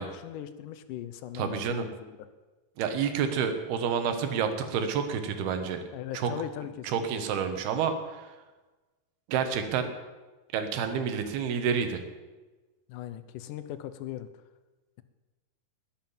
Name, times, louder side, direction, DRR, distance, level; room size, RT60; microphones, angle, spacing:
voice 1, 0.0-2.2 5.9-7.3 12.9-14.3, left 11 dB, 75° left, 12 dB, 2.0 m, -39 dB
voice 2, 1.3-1.9 2.8-5.8 6.1-6.3 6.8-8.3 9.3-9.9 10.5-12.0, right 7 dB, 85° right, 7 dB, 3.3 m, -29 dB
20.5 x 7.6 x 7.3 m, 1.2 s
omnidirectional pair, 4.4 m